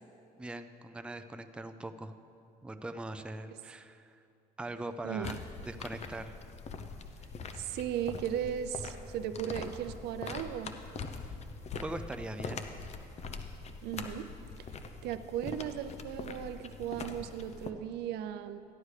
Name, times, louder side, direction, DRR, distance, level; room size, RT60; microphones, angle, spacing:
voice 1, 0.4-2.2 2.6-4.2 4.6-5.4 5.6-6.4 11.7-12.6, right 2 dB, 5° right, 8 dB, 0.4 m, -41 dB
voice 2, 5.0-5.4 7.5-10.7 13.8-14.3 15.0-18.6, right 10 dB, 80° right, 11 dB, 0.5 m, -36 dB
sound 1, 5.2-17.7, left 4 dB, 40° left, 0.7 m, -43 dB
14.0 x 11.0 x 3.3 m, 2.6 s
cardioid pair, 110°, 17 cm